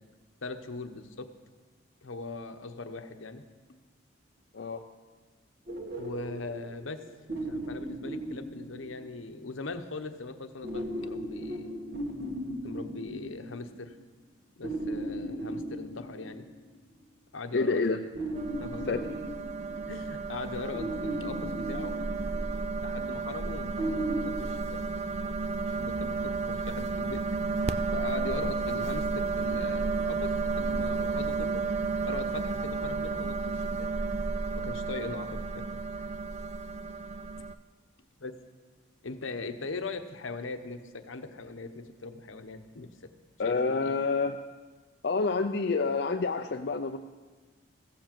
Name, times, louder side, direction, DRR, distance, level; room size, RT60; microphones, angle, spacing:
voice 1, 0.4-1.3 2.0-3.4 3.7-3.8 5.9-7.0 7.4-11.8 12.6-14.0 14.6-16.4 17.3-18.0 18.6-19.1 19.9-22.0 22.8-23.9 24.2-24.8 25.7-27.2 27.9-31.6 32.0-33.9 34.5-35.7 38.2-38.3 39.0-43.1 43.4-44.0, left 3 dB, 80° left, 8 dB, 0.9 m, -40 dB
sound 1, 5.7-9.3 10.6-13.9 14.6-16.7 18.1-20.2 20.7-22.8 23.8-24.3, right 1 dB, 50° right, 1.7 m, -37 dB
voice 2, 17.5-18.0 18.9-19.0 43.4-44.4 45.0-47.0, left 4 dB, 55° left, 5 dB, 0.4 m, -28 dB
sound 2, 18.3-37.5, right 4 dB, 35° right, 0.4 m, -32 dB
15.0 x 7.3 x 7.6 m, 1.4 s
head